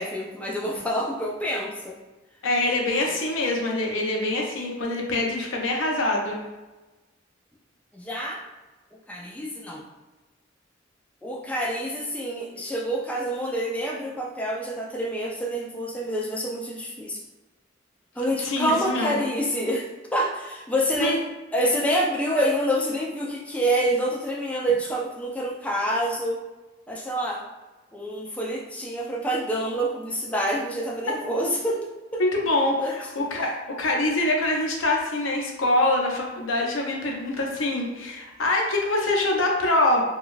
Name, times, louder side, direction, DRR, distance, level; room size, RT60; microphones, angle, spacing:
voice 1, 0.0-2.0 7.9-8.4 9.1-9.8 11.2-17.2 18.2-21.2 21.5-26.4 26.9-27.4 27.9-32.2 32.8-32.9 33.4-33.5, equal, 5° left, -2 dB, 0.3 m, -27 dB
voice 2, 2.4-6.4 18.4-19.2 21.0-21.2 32.2-33.5 33.8-40.0, left 2 dB, 90° left, 0 dB, 0.7 m, -24 dB
3.7 x 2.3 x 2.5 m, 1.1 s
head